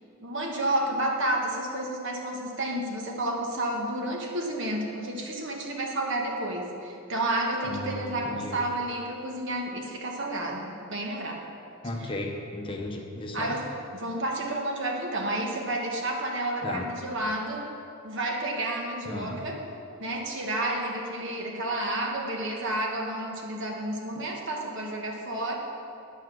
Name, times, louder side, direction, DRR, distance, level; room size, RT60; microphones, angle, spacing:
voice 1, 0.2-11.5 12.0-12.1 13.3-17.7 18.0-19.6 20.0-25.6, right 1 dB, 60° right, 0 dB, 1.3 m, -31 dB
voice 2, 7.6-8.6 11.8-13.5 16.6-16.9 19.1-19.5, left 1 dB, 25° left, 2 dB, 0.8 m, -35 dB
10.5 x 5.9 x 6.2 m, 2.5 s
head